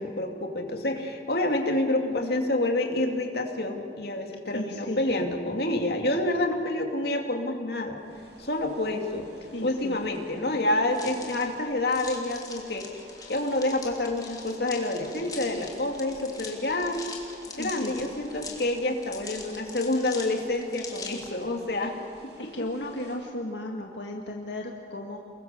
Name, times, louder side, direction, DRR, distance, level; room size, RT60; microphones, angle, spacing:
voice 1, 0.0-8.0 8.4-9.3 9.6-17.0 17.6-21.9 22.4-22.5, left 1 dB, 60° left, 3 dB, 2.7 m, -28 dB
voice 2, 2.0-2.3 4.5-5.0 9.5-10.0 17.6-17.9 22.4-25.2, left 1 dB, 80° left, 1 dB, 1.8 m, -35 dB
sound 1, 8.0-23.2, right 1 dB, 75° right, 5.8 m, -51 dB
sound 2, 10.9-21.4, left 4 dB, 20° left, 3.2 m, -42 dB
29.0 x 22.0 x 7.0 m, 2.3 s
head